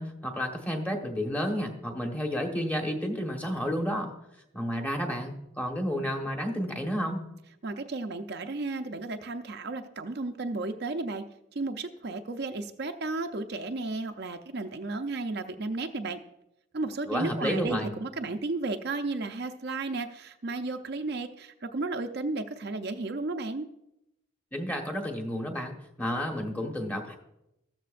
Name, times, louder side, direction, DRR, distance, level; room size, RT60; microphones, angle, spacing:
voice 1, 0.0-4.1 4.5-7.3 17.1-17.9 24.5-27.2, equal, 10° left, 2 dB, 1.3 m, -31 dB
voice 2, 7.6-11.2 11.5-16.2 16.7-23.7, right 3 dB, 55° right, 6 dB, 0.6 m, -33 dB
14.5 x 13.5 x 2.5 m, 0.86 s
head